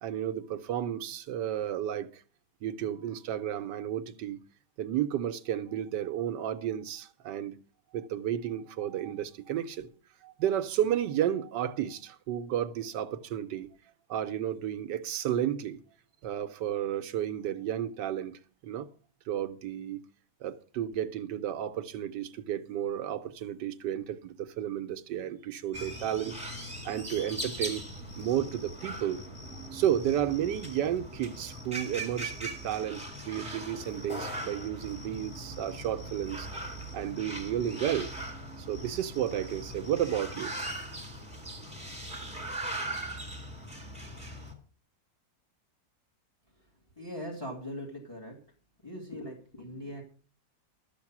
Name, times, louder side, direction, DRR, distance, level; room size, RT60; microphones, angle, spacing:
voice 1, 0.0-2.2 2.6-4.4 4.8-7.6 7.9-9.9 10.2-13.7 14.1-15.8 16.2-18.9 19.3-20.0 20.4-26.4 26.8-27.8 28.2-29.2 29.7-36.5 36.9-38.1 38.6-40.5, right 10 dB, 90° right, 1.4 m, -32 dB
sound 1, 25.7-44.5, right 1 dB, 5° right, 2.1 m, -40 dB
voice 2, 47.0-48.4 48.8-50.0, equal, 15° left, 2.2 m, -40 dB
12.5 x 7.3 x 6.0 m
omnidirectional pair, 1.8 m